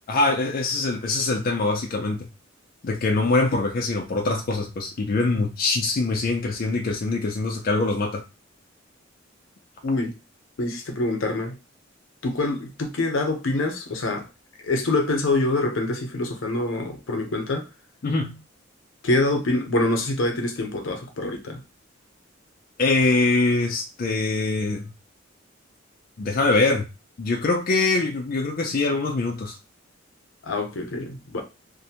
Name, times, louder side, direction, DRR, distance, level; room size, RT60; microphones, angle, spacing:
voice 1, 0.1-2.3 2.8-8.2 18.0-18.3 22.8-24.9 26.2-26.8 27.2-29.6, left 3 dB, 45° left, 0.4 m, -23 dB
voice 2, 9.8-10.1 10.6-11.6 12.2-14.3 14.6-17.6 19.0-21.6 30.4-31.4, left 2 dB, 80° left, 0.7 m, -25 dB
2.5 x 2.0 x 2.8 m
head